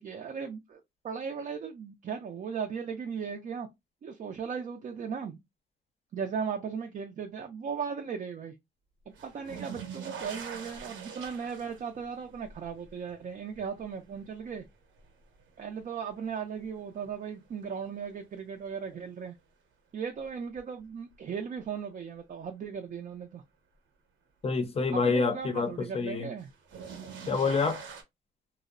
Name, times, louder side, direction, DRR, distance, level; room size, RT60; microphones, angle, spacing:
voice 1, 0.0-3.7 4.0-5.4 6.1-8.5 9.2-14.6 15.6-19.4 19.9-23.4 24.9-26.5, right 6 dB, 40° right, 0.4 m, -37 dB
sound 1, 9.1-16.2 16.6-17.3 18.9-19.0 20.6-20.7 26.4-28.0, right 6 dB, 75° right, 0.8 m, -44 dB
voice 2, 24.4-26.3 27.3-27.8, left 4 dB, 30° left, 0.6 m, -27 dB
2.6 x 2.0 x 2.5 m
cardioid pair, 90°, 20 cm